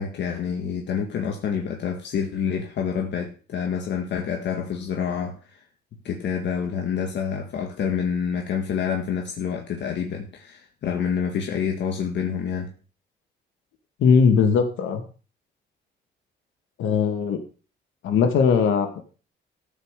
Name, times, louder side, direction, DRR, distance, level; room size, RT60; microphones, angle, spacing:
voice 1, 0.0-5.6 6.0-12.7, left 7 dB, 70° left, 2 dB, 1.9 m, -27 dB
voice 2, 14.0-15.0 16.8-17.4 18.0-19.0, left 6 dB, 90° left, 6 dB, 2.3 m, -19 dB
14.0 x 5.6 x 6.8 m, 0.37 s
cardioid pair, 110°, 19 cm